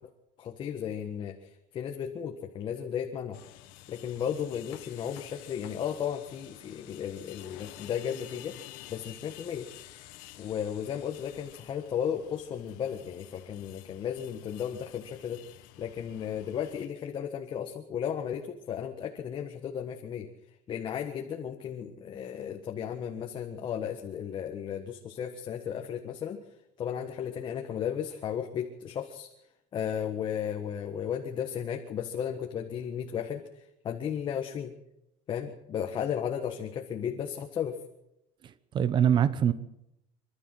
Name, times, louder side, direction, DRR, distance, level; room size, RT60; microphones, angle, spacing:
voice 1, 0.4-3.4 3.9-8.6 8.9-9.7 10.4-15.4 15.8-20.3 20.7-26.4 26.8-29.3 29.7-34.7 35.3-37.8, left 8 dB, 35° left, 2 dB, 1.6 m, -34 dB
sound 1, 3.3-16.9, left 15 dB, 75° left, 1.7 m, -50 dB
voice 2, 38.4-39.5, right 9 dB, 30° right, 15 dB, 1.0 m, -24 dB
27.0 x 12.5 x 7.8 m, 0.84 s
cardioid pair, 165°, 15 cm